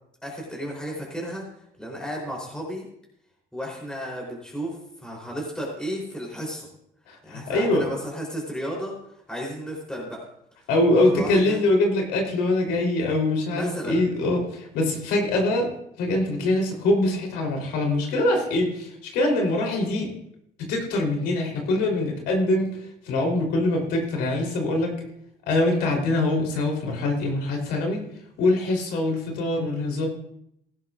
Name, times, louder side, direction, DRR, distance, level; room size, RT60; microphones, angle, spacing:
voice 1, 0.2-1.5 1.8-2.9 3.5-6.7 7.2-9.0 9.3-10.3 10.9-11.6 13.5-14.0, equal, 5° left, -3 dB, 3.5 m, -33 dB
voice 2, 7.1-7.8 10.7-15.7 16.0-20.1 20.7-25.0 25.5-28.0 28.4-30.1, left 2 dB, 90° left, 1 dB, 3.6 m, -23 dB
16.5 x 12.0 x 2.5 m, 0.75 s
cardioid pair, 110°, 17 cm